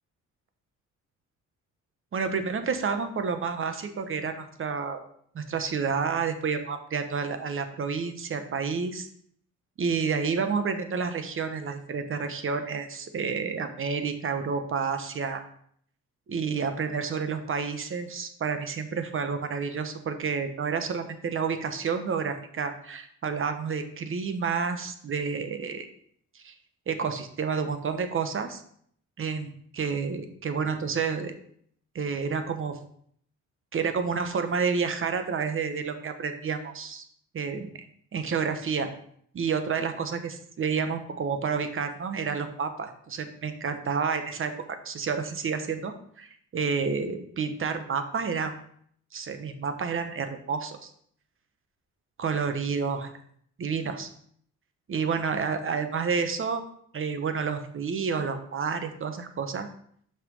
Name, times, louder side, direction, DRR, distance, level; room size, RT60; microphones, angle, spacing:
voice 1, 2.1-5.0 5.3-9.1 9.8-15.4 16.3-25.9 26.3-26.5 26.9-28.6 29.2-31.3 31.9-32.8 33.7-37.0 37.3-37.9 38.1-38.9 39.3-48.5 49.1-50.9 52.2-53.1 53.6-54.1 54.9-56.6 56.9-59.7, right 5 dB, 45° right, 8 dB, 1.1 m, -30 dB
5.9 x 5.7 x 5.4 m, 0.64 s
cardioid pair, 90°, 30 cm